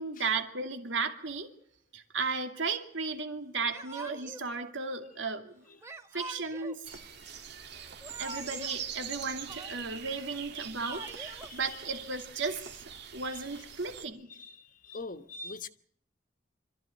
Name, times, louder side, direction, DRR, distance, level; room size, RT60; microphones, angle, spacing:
voice 1, 0.0-1.5 1.9-5.6 6.1-6.9 8.2-12.8 13.1-14.3, right 4 dB, 85° right, 2.5 m, -35 dB
Yell / Crying sobbing, 3.7-4.5 5.8-6.8 7.8-8.8 9.1-10.0 10.6-11.5, right 2 dB, 15° right, 1.6 m, -45 dB
sound 1, 6.8-14.0, right 8 dB, 65° right, 1.8 m, -43 dB
voice 2, 11.4-11.8 13.2-13.6 14.3-15.7, left 4 dB, 45° left, 1.3 m, -44 dB
26.0 x 14.5 x 9.1 m
head